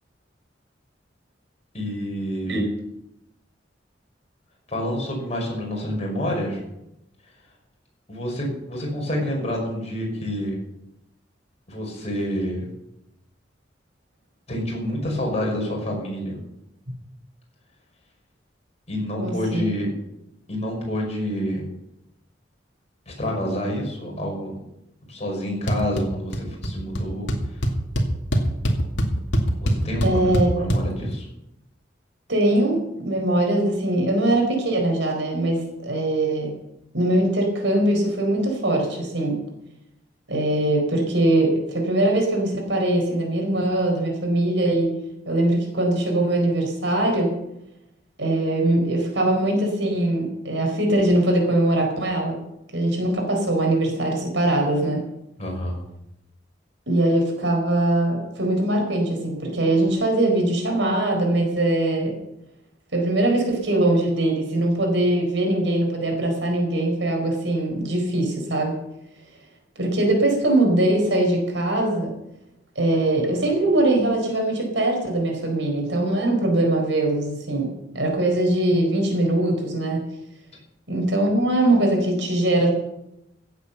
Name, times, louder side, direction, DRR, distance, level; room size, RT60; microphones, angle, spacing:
voice 1, 1.7-2.6 4.7-6.6 8.1-10.6 11.7-12.7 14.5-16.4 18.9-19.9 20.5-21.6 23.1-24.6 25.1-27.7 29.6-30.3 30.6-31.3 55.4-55.8, equal, 35° left, -1 dB, 5.7 m, -28 dB
voice 2, 19.2-19.6 30.0-30.6 32.3-36.5 36.9-39.4 40.3-44.9 45.3-47.3 48.2-52.4 52.7-55.0 56.9-62.1 62.9-68.8 69.8-72.1 72.8-77.7 77.9-80.0 80.9-82.7, right 1 dB, 85° right, 2 dB, 4.5 m, -21 dB
sound 1, 25.7-26.0 26.3-26.7 27.0-27.1 27.3-30.8, equal, 80° left, 2.3 m, -22 dB
16.0 x 8.3 x 7.0 m, 0.87 s
head